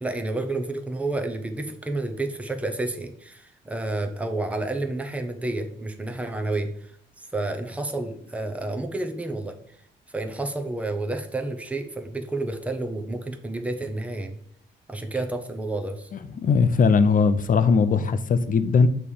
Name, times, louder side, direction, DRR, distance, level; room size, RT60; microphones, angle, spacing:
voice 1, 0.0-6.9 7.2-9.5 10.1-14.4 14.9-16.1, right 2 dB, 5° right, 5 dB, 0.9 m, -30 dB
voice 2, 16.3-18.9, left 5 dB, 45° left, 12 dB, 0.6 m, -19 dB
6.6 x 3.3 x 5.5 m, 0.67 s
cardioid pair, 90°, 20 cm